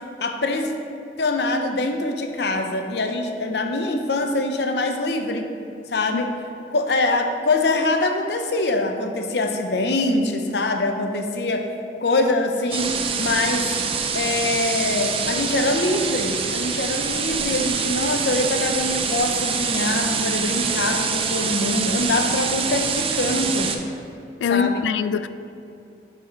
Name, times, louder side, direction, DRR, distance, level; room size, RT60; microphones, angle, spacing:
voice 1, 0.2-0.7 1.2-5.5 5.9-6.3 6.7-11.7 12.0-13.7 14.1-23.7 24.5-24.8, left 2 dB, 65° left, 0.7 m, -23 dB
sound 1, 12.7-23.8, right 6 dB, 30° right, 0.5 m, -25 dB
voice 2, 24.4-25.3, left 7 dB, 90° left, 0.3 m, -23 dB
7.4 x 4.8 x 5.2 m
head